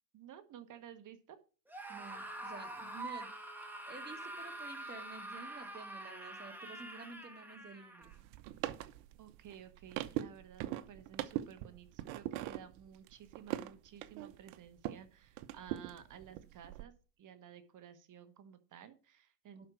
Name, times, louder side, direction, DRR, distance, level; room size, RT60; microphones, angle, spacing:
voice 1, 0.1-1.4 9.2-19.7, right 9 dB, 40° right, 10 dB, 1.3 m, -54 dB
Screaming, 1.7-8.2, right 2 dB, 5° right, 2.3 m, -46 dB
voice 2, 1.9-3.3 3.8-8.1 19.6-19.7, right 3 dB, 20° right, 5 dB, 2.3 m, -51 dB
sound 1, 8.0-15.1 15.4-16.8, right 14 dB, 65° right, 1.0 m, -42 dB
11.5 x 4.5 x 6.3 m, 0.37 s
supercardioid pair, 100°, 48 cm